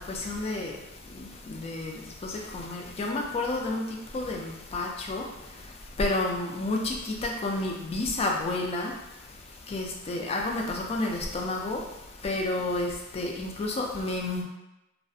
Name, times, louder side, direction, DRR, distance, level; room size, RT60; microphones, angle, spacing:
voice 1, 0.0-14.4, left 2 dB, 30° left, 0 dB, 0.3 m, -31 dB
2.4 x 2.1 x 2.6 m, 0.95 s
head